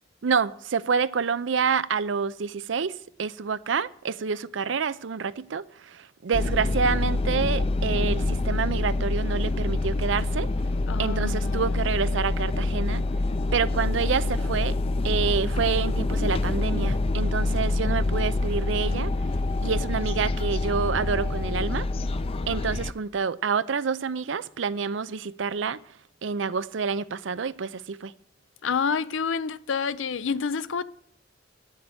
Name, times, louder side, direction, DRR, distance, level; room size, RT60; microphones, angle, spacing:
voice 1, 0.2-2.9 3.2-10.5 11.0-13.0 13.5-14.8 15.0-19.1 19.6-21.9 22.5-25.8 26.2-28.1, right 5 dB, 75° right, 0.5 m, -28 dB
sound 1, 6.3-22.9, left 2 dB, 30° left, 0.5 m, -26 dB
voice 2, 10.9-11.8 28.6-30.8, left 5 dB, 80° left, 0.6 m, -28 dB
9.9 x 7.3 x 8.9 m
head